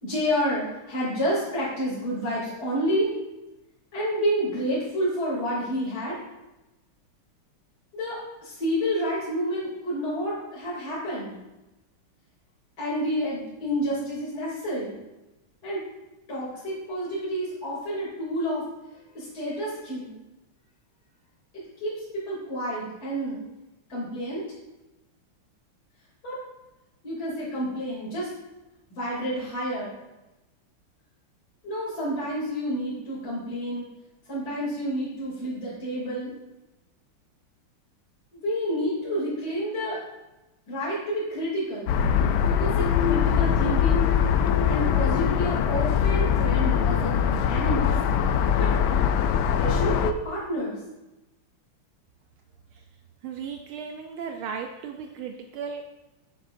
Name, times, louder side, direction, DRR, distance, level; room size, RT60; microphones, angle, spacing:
voice 1, 0.0-3.1 3.9-6.2 7.9-11.3 12.8-15.0 15.6-15.8 16.3-18.6 19.1-20.1 21.8-23.4 23.9-24.4 26.2-26.4 27.0-28.3 28.9-30.0 31.6-33.9 34.3-36.3 38.3-40.0 40.7-41.9 42.5-44.1 44.6-47.9 48.5-48.7 49.6-50.8, equal, 45° left, -8 dB, 3.5 m, -29 dB
sound 1, 41.9-50.1, left 8 dB, 80° left, 0.9 m, -22 dB
voice 2, 53.2-55.9, right 6 dB, 75° right, 4 dB, 1.5 m, -36 dB
11.0 x 9.4 x 2.6 m, 1.0 s
omnidirectional pair, 2.4 m